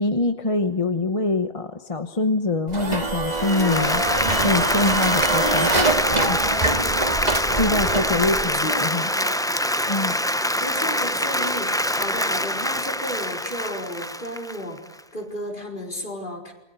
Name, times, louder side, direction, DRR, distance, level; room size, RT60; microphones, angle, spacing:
voice 1, 0.0-4.0 4.4-5.7 6.3-6.4 7.5-9.1 9.9-10.2, left 3 dB, 35° left, 9 dB, 1.1 m, -24 dB
sound 1, 2.7-8.5, right 2 dB, 45° right, 2.2 m, -24 dB
Applause, 3.3-15.0, left 1 dB, 5° left, 0.7 m, -24 dB
voice 2, 7.6-9.4 10.6-14.8 15.1-16.5, left 1 dB, 55° left, 1 dB, 4.9 m, -33 dB
28.0 x 22.5 x 6.8 m, 1.0 s
omnidirectional pair, 1.0 m